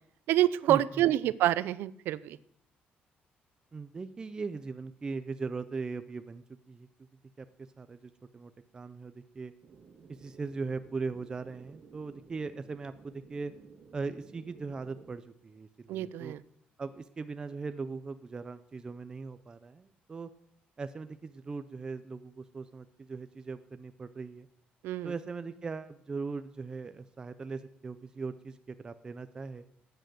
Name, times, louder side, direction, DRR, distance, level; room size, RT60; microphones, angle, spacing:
voice 1, 0.3-2.4 15.9-16.4 24.8-25.1, right 13 dB, 85° right, 18 dB, 0.5 m, -27 dB
voice 2, 3.7-6.9 7.4-7.5 7.8-9.5 10.1-13.5 13.9-16.4 16.8-20.3 20.8-24.5 25.0-29.6, right 4 dB, 20° right, 10 dB, 0.5 m, -39 dB
sound 1, 9.6-15.2, right 5 dB, 45° right, 1.9 m, -55 dB
13.0 x 9.0 x 7.8 m, 0.72 s
cardioid pair, 160°, 4 cm